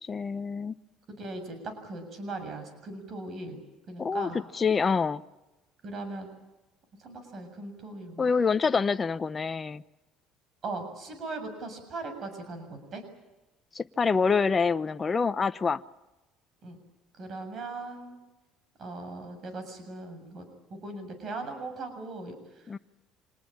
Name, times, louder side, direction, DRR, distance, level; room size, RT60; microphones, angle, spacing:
voice 1, 0.0-0.7 4.0-5.2 8.2-9.8 13.7-15.8 22.7-22.8, left 5 dB, 25° left, 11 dB, 0.8 m, -26 dB
voice 2, 1.1-3.6 3.9-4.4 5.8-6.3 7.0-8.3 10.6-13.0 16.6-16.8 17.2-18.2 18.8-22.8, right 2 dB, 45° right, 8 dB, 7.2 m, -39 dB
26.5 x 20.0 x 8.7 m, 1.0 s
cardioid pair, 110°, 0 cm